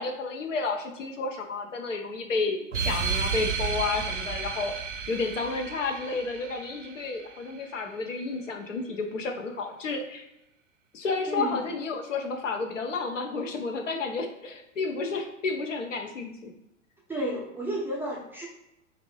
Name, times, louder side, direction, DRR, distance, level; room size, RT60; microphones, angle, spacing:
voice 1, 0.0-4.7 5.1-10.2 10.9-16.5, left 4 dB, 70° left, 3 dB, 0.9 m, -31 dB
sound 1, 2.7-7.7, right 6 dB, 65° right, 0.6 m, -32 dB
voice 2, 11.3-11.6 17.1-18.5, right 1 dB, 5° right, -3 dB, 0.5 m, -32 dB
4.3 x 2.6 x 3.2 m, 0.88 s
figure-of-eight pair, 95°, 39 cm